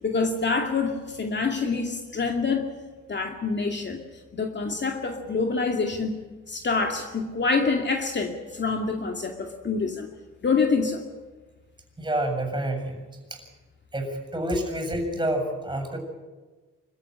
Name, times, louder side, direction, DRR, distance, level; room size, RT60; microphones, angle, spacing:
voice 1, 0.0-2.7 3.1-4.0 4.3-6.2 6.5-10.1 10.4-11.0, left 4 dB, 35° left, 3 dB, 2.5 m, -26 dB
voice 2, 12.0-13.0 13.3-13.4 13.9-16.0, right 1 dB, 15° right, 5 dB, 7.4 m, -28 dB
26.0 x 14.5 x 10.0 m, 1.3 s
cardioid pair, 90°, 30 cm